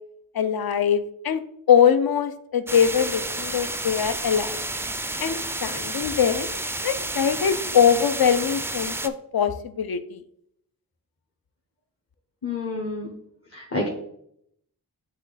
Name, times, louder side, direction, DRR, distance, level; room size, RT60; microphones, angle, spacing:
voice 1, 0.3-1.4 1.7-4.6 5.2-6.5 6.8-10.2, left 8 dB, 60° left, 11 dB, 0.6 m, -22 dB
sound 1, 2.7-9.1, right 2 dB, 5° right, 0.3 m, -31 dB
voice 2, 12.4-13.2 13.5-13.9, left 2 dB, 35° left, -3 dB, 1.2 m, -29 dB
7.7 x 3.1 x 4.1 m, 0.73 s
cardioid pair, 50°, 41 cm